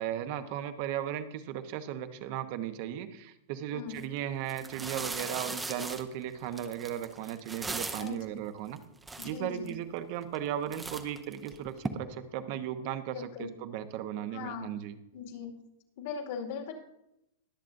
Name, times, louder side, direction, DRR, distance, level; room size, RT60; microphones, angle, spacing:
voice 1, 0.0-8.8 9.2-14.9, right 10 dB, 50° right, 10 dB, 1.0 m, -36 dB
voice 2, 3.7-4.1 8.0-8.2 9.2-9.7 13.1-13.6 14.3-14.7 15.1-15.6 16.0-16.7, left 6 dB, 60° left, 0 dB, 2.2 m, -40 dB
sound 1, 3.9-4.0 4.5-8.2 8.8-8.9 9.0-9.7 10.2-10.5 10.7-11.9, right 3 dB, 10° right, 0.8 m, -38 dB
22.0 x 7.3 x 2.6 m, 0.83 s
supercardioid pair, 145°, 0 cm